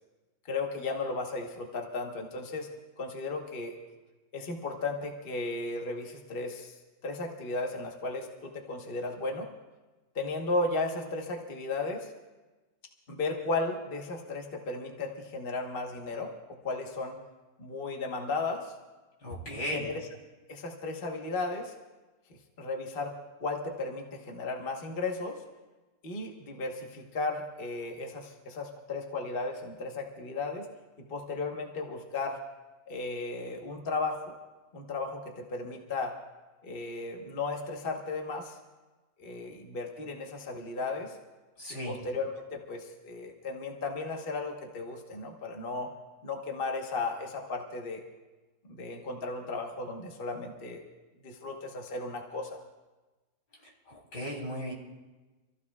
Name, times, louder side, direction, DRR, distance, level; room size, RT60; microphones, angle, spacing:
voice 1, 0.5-2.7 3.0-3.7 4.3-6.7 7.0-9.5 10.1-12.1 13.1-17.2 17.6-18.7 19.5-20.1 20.5-21.7 22.6-25.4 26.0-30.7 31.0-32.4 32.9-34.3 34.7-36.2 36.6-38.6 39.2-41.2 41.7-45.9 46.2-48.0 48.7-50.8 51.2-52.6, left 3 dB, 35° left, 2 dB, 1.4 m, -35 dB
voice 2, 19.2-19.9 41.6-42.0 53.9-54.7, equal, 80° left, -3 dB, 4.1 m, -36 dB
27.0 x 15.0 x 2.4 m, 1.2 s
omnidirectional pair, 1.8 m